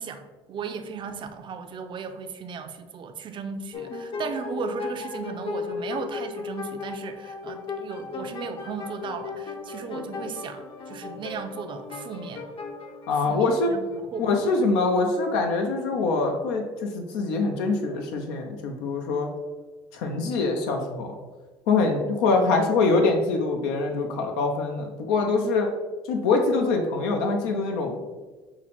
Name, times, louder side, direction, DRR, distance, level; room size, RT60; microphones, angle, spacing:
voice 1, 0.0-12.5 13.1-14.5, right 6 dB, 40° right, 7 dB, 0.5 m, -36 dB
sound 1, 3.7-14.2, left 4 dB, 45° left, 0.7 m, -36 dB
voice 2, 13.1-13.7 14.2-19.3 19.9-21.1 21.7-25.7 26.1-28.0, left 3 dB, 90° left, 3 dB, 0.6 m, -24 dB
5.9 x 2.1 x 4.1 m, 1.2 s
supercardioid pair, 100°, 12 cm